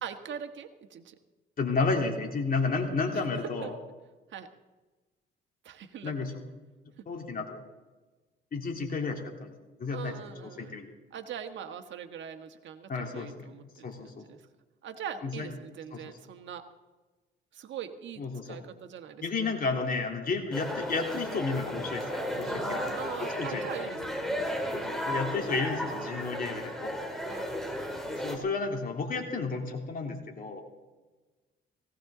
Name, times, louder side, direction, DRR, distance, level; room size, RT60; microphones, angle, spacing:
voice 1, 0.0-1.2 3.1-3.2 3.6-3.7 4.3-4.5 5.6-6.2 7.0-7.1 9.9-10.8 11.1-14.5 14.8-16.7 17.5-19.6 20.2-20.4 22.9-24.5 27.3-27.5, right 8 dB, 70° right, 7 dB, 1.4 m, -42 dB
voice 2, 1.6-3.7 6.0-6.3 7.1-7.6 8.5-9.5 9.8-10.1 10.6-10.9 12.9-13.5 13.8-14.2 15.2-15.5 15.9-16.0 18.2-18.6 19.2-23.0 23.4-23.7 24.7-27.0 28.2-30.6, left 4 dB, 45° left, 1 dB, 3.4 m, -32 dB
sound 1, 20.5-28.4, equal, ahead, 3.3 m, -34 dB
18.5 x 16.5 x 3.9 m, 1.2 s
cardioid pair, 90°, 20 cm